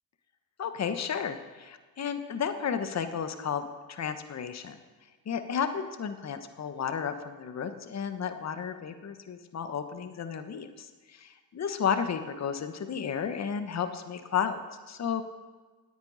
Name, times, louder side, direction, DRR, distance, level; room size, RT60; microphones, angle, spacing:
voice 1, 0.6-4.8 5.2-15.2, left 7 dB, 35° left, 9 dB, 1.1 m, -33 dB
17.0 x 10.0 x 4.1 m, 1.4 s
hypercardioid pair, 65°, 48 cm